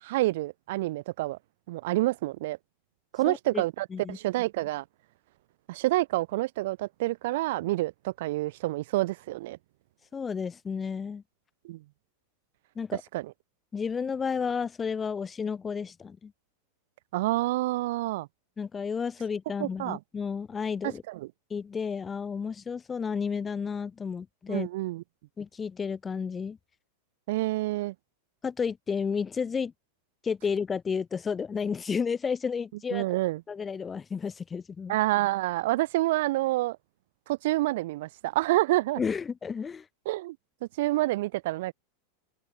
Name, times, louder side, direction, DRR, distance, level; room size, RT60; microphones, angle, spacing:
voice 1, 0.0-1.4 1.7-2.6 3.1-4.8 5.7-9.6 11.6-11.8 13.1-13.3 17.1-18.3 19.6-20.0 20.8-21.3 24.5-25.0 27.3-27.9 32.9-33.4 34.9-36.8 37.3-39.0 40.1-40.4 40.8-41.7, right 18 dB, 50° right, 0.4 m, -28 dB
voice 2, 3.3-3.6 3.9-4.2 10.1-11.2 12.8-13.0 13.7-16.3 18.6-21.0 21.5-24.7 25.4-26.6 28.4-29.7 30.2-33.0 33.5-35.0 39.0-39.9, left 6 dB, 20° left, 0.3 m, -32 dB
open air
figure-of-eight pair, 90°, 0 cm